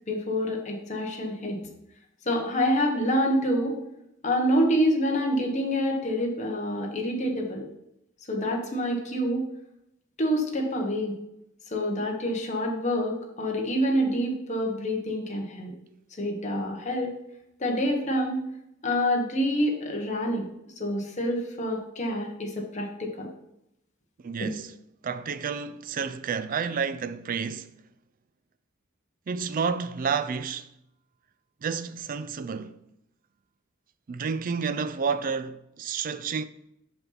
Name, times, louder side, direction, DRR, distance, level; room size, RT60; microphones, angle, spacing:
voice 1, 0.1-1.6 2.2-3.8 4.2-7.6 8.3-9.5 10.2-11.2 11.7-15.7 16.2-17.2 17.6-18.5 18.8-20.4 20.8-23.3, equal, 35° left, 1.2 m, -27 dB
voice 2, 24.2-24.7 25.0-27.7 29.3-30.7 31.6-32.8 34.1-36.4, right 5 dB, 45° right, 0.4 m, -30 dB
5.7 x 5.6 x 4.0 m
head